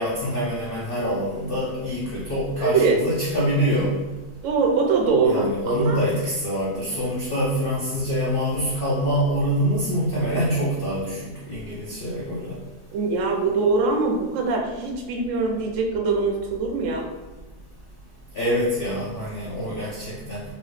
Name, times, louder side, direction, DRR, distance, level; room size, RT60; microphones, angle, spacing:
voice 1, 0.0-3.9 5.2-12.6 18.3-20.4, equal, 75° left, -6 dB, 0.5 m, -25 dB
voice 2, 2.6-3.0 4.4-6.0 12.9-17.1, right 4 dB, 70° right, 1 dB, 0.8 m, -22 dB
3.0 x 2.7 x 3.1 m, 1.2 s
omnidirectional pair, 1.7 m